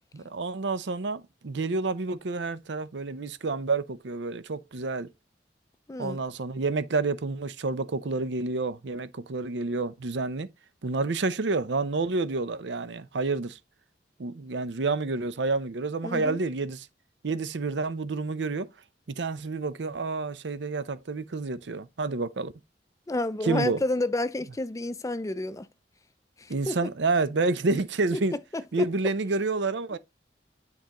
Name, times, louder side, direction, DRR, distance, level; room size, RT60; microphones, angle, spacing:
voice 1, 0.1-5.1 6.0-10.5 10.8-13.6 14.2-16.9 17.2-18.7 19.1-22.5 23.4-23.8 26.5-28.4 28.7-30.0, right 3 dB, 90° right, 0.6 m, -29 dB
voice 2, 16.0-16.4 23.1-25.7 26.4-26.9 28.1-28.2 28.5-28.9, left 2 dB, 20° left, 0.4 m, -30 dB
9.7 x 3.9 x 3.0 m
head